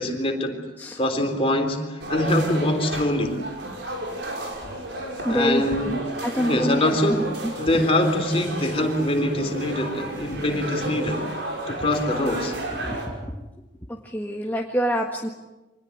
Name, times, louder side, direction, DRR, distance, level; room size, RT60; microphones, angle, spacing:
voice 1, 0.0-0.7 1.0-3.5 5.3-6.0 6.3-11.3 11.7-12.5, left 1 dB, 30° left, 3.5 m, -24 dB
sound 1, 2.0-13.1, right 1 dB, 65° right, 6.0 m, -33 dB
voice 2, 5.2-6.8 7.1-7.2 12.8-13.0 13.9-15.3, equal, 10° left, 1.7 m, -26 dB
26.0 x 19.5 x 9.6 m
head